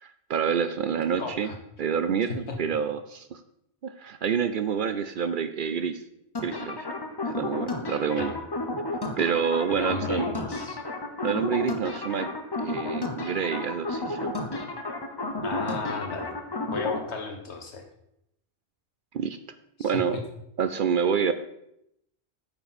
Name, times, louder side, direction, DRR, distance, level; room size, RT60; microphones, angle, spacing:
voice 1, 0.0-1.5 1.8-3.4 3.8-6.0 6.4-6.9 7.2-8.3 9.2-10.3 11.2-12.3 12.6-14.4 19.1-19.4 19.8-20.2 20.6-21.3, right 7 dB, 60° right, 11 dB, 0.6 m, -27 dB
voice 2, 1.2-1.6 2.3-2.6 8.2-8.4 9.7-10.8 15.4-16.3 16.6-17.8 19.8-20.2, left 3 dB, 80° left, 4 dB, 1.6 m, -34 dB
sound 1, 6.3-17.0, left 2 dB, 25° left, 0.8 m, -32 dB
9.1 x 6.7 x 4.2 m, 0.79 s
omnidirectional pair, 1.1 m